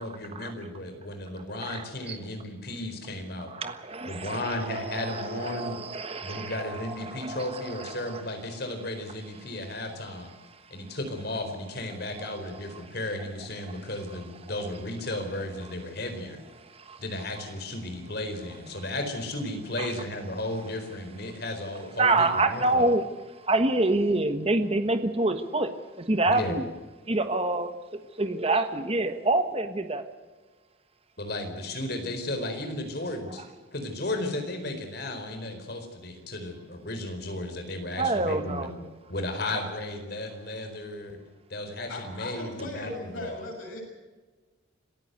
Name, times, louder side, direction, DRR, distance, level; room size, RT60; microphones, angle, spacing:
voice 1, 0.0-3.5 4.1-5.8 6.2-10.3 10.7-16.4 17.0-22.9 26.2-26.6 31.2-33.4 33.7-38.8 39.1-41.2 41.5-43.4, left 1 dB, 50° left, 6 dB, 4.4 m, -34 dB
voice 2, 1.7-2.2 3.5-8.2 16.7-17.0 19.8-19.9 22.0-23.0 23.4-25.7 26.0-26.7 27.1-27.7 28.2-30.0 38.0-38.7, right 2 dB, 30° right, 8 dB, 1.4 m, -27 dB
voice 3, 41.9-43.8, left 2 dB, 80° left, -1 dB, 7.3 m, -38 dB
26.5 x 15.5 x 8.1 m, 1.3 s
head